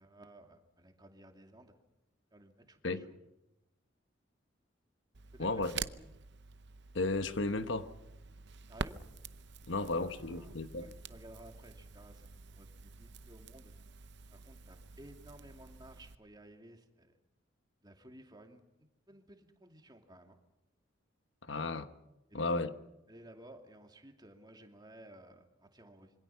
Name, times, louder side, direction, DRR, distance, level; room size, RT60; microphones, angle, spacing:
voice 1, 0.0-1.7 2.3-3.2 5.3-5.6 6.0-6.1 8.7-9.0 9.7-13.7 14.3-17.2 17.8-20.4 22.3-22.7 23.1-26.1, right 1 dB, 20° right, 2.5 m, -56 dB
Crackle, 5.1-16.2, right 5 dB, 60° right, 0.8 m, -47 dB
voice 2, 5.4-5.8 6.9-7.9 9.7-10.9 21.4-21.9 22.3-22.7, left 3 dB, 70° left, 1.3 m, -34 dB
26.5 x 24.5 x 5.8 m
head